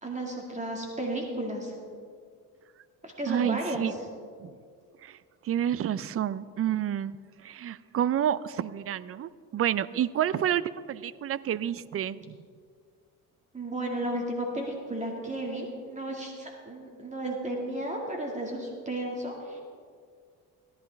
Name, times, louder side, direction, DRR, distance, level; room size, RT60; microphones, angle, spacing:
voice 1, 0.0-1.8 3.0-4.1 13.5-19.6, right 1 dB, 20° right, 0 dB, 2.1 m, -33 dB
voice 2, 3.3-3.9 4.4-4.5 5.0-5.2 5.4-7.1 7.4-12.3, right 10 dB, 40° right, 17 dB, 0.5 m, -29 dB
17.5 x 11.0 x 3.4 m, 2.1 s
cardioid pair, 85°, 36 cm